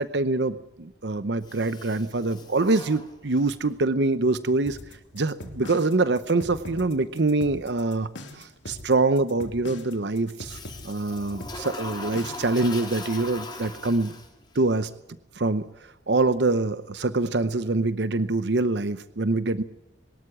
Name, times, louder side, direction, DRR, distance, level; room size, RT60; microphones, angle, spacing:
voice 1, 0.0-4.8 5.1-10.6 10.8-14.1 14.5-14.9 15.4-15.7 16.1-19.6, right 3 dB, 65° right, 13 dB, 0.8 m, -25 dB
Toilet flush, 1.4-3.7 10.4-14.6, left 2 dB, 25° left, 4.0 m, -40 dB
sound 1, 4.7-12.6, left 1 dB, 85° left, 3.1 m, -41 dB
23.0 x 13.0 x 9.9 m, 0.90 s
head